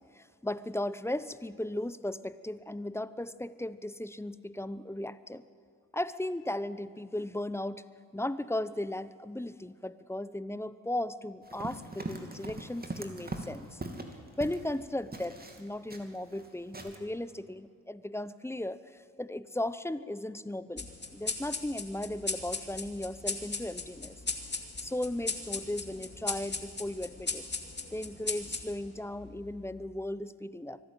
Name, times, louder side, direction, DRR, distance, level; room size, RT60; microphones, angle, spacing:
voice 1, 0.1-5.4 5.9-7.8 8.1-13.8 14.4-24.2 24.8-27.4 27.9-30.8, left 1 dB, 5° left, 15 dB, 0.8 m, -36 dB
Run, 11.4-14.8 15.1-16.5 16.7-17.0, right 2 dB, 25° right, 2.8 m, -41 dB
sound 1, 20.8-29.7, left 3 dB, 30° left, 2.4 m, -38 dB
24.0 x 12.0 x 9.1 m, 2.2 s
supercardioid pair, 50°, 35 cm